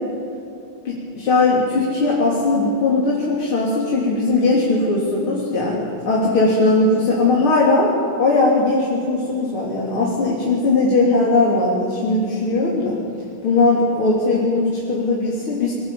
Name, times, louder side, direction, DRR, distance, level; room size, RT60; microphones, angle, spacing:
voice 1, 0.9-7.9 8.2-13.0 13.4-15.7, left 3 dB, 75° left, -5 dB, 4.2 m, -19 dB
24.0 x 18.0 x 8.6 m, 2.7 s
omnidirectional pair, 2.4 m